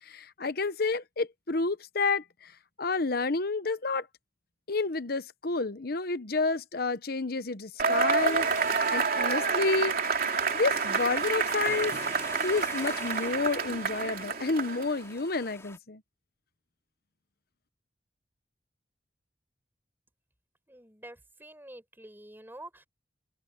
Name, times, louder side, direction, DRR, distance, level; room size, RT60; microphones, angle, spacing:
voice 1, 0.0-2.5 2.8-4.1 4.7-12.0 12.4-16.0, left 3 dB, 55° left, 1.0 m, -30 dB
Cheering / Applause / Crowd, 7.8-15.0, right 5 dB, 50° right, 3.2 m, -28 dB
sound 1, 8.2-15.8, left 2 dB, 15° left, 2.6 m, -45 dB
voice 2, 20.7-22.9, right 1 dB, 10° right, 6.6 m, -48 dB
head